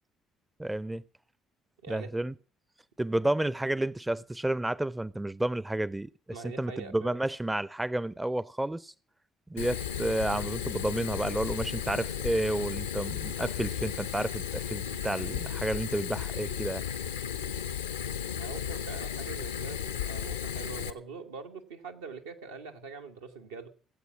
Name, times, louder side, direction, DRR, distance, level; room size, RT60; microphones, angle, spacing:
voice 1, 0.6-1.0 1.9-2.3 3.0-6.1 6.4-8.9 9.5-16.8, right 1 dB, 10° right, 0.5 m, -31 dB
voice 2, 1.8-2.1 6.3-7.2 16.3-16.6 18.3-23.7, right 4 dB, 80° right, 1.3 m, -43 dB
Fire, 9.6-20.9, left 8 dB, 85° left, 0.7 m, -35 dB
17.0 x 8.1 x 6.1 m
figure-of-eight pair, 50°, 0 cm